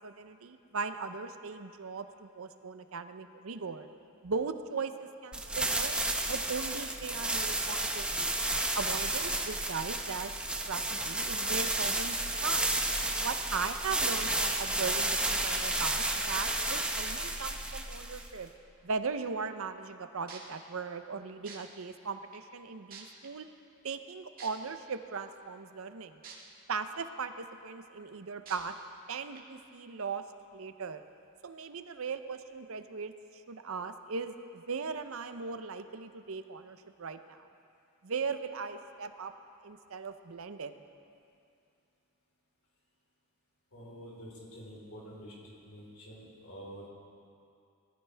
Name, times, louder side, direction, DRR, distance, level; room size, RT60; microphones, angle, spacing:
voice 1, 0.0-3.9 4.2-8.3 8.7-10.3 10.7-12.2 12.4-12.7 13.2-18.5 18.8-23.5 23.8-26.2 26.7-28.7 29.1-30.2 30.5-31.0 31.4-33.1 33.5-37.4 38.0-39.3 39.6-40.8, right 5 dB, 70° right, 9 dB, 0.7 m, -38 dB
sound 1, 5.3-18.5, right 2 dB, 5° right, 0.8 m, -32 dB
sound 2, 20.3-20.5 21.5-21.6 22.3-22.4 22.9-23.3 24.4-24.5 26.2-26.3 26.9-27.0 28.5-28.6 29.3-29.4, right 6 dB, 45° right, 2.1 m, -46 dB
voice 2, 43.7-46.9, equal, 70° left, -5 dB, 4.2 m, -48 dB
20.0 x 14.5 x 3.5 m, 2.6 s
head